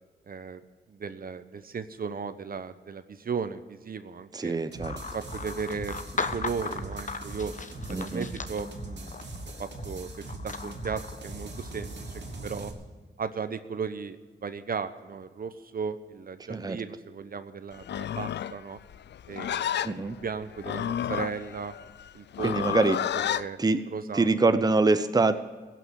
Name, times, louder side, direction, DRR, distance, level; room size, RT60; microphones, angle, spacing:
voice 1, 0.3-0.6 0.9-4.6 5.1-5.9 6.3-7.5 7.9-9.2 9.6-10.1 10.4-12.7 13.2-14.2 14.4-18.8 19.3-21.7 22.1-22.7 23.1-23.6 23.9-24.5, right 5 dB, 50° right, 12 dB, 0.9 m, -36 dB
voice 2, 4.3-4.9 7.9-8.3 16.5-16.8 19.8-20.1 22.4-23.0 23.6-23.8 24.1-25.4, right 3 dB, 20° right, 10 dB, 0.7 m, -24 dB
sound 1, 4.7-12.7, right 2 dB, 70° right, 2.2 m, -41 dB
sound 2, 4.8-12.7, left 4 dB, 45° left, 1.0 m, -39 dB
Livestock farm animals working animals, 17.8-23.5, left 10 dB, 70° left, 0.4 m, -31 dB
16.0 x 6.1 x 9.2 m, 1.4 s
cardioid pair, 65°, 19 cm